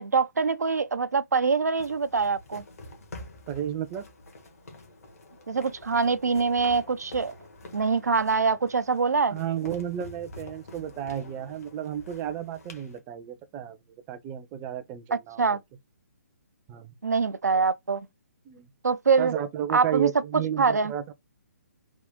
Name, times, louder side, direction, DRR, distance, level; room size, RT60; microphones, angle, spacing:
voice 1, 0.0-2.6 5.5-7.3 7.7-9.4 15.4-15.6 17.0-18.1 18.8-19.3 19.7-20.1 20.6-20.9, right 5 dB, 85° right, 0.5 m, -24 dB
sound 1, 1.8-13.0, left 2 dB, 65° left, 1.4 m, -47 dB
voice 2, 3.5-4.0 9.3-13.8 14.1-15.4 16.7-16.9 18.5-18.7 19.2-21.1, right 10 dB, 25° right, 0.6 m, -32 dB
3.6 x 2.4 x 3.6 m
figure-of-eight pair, 140°, 9 cm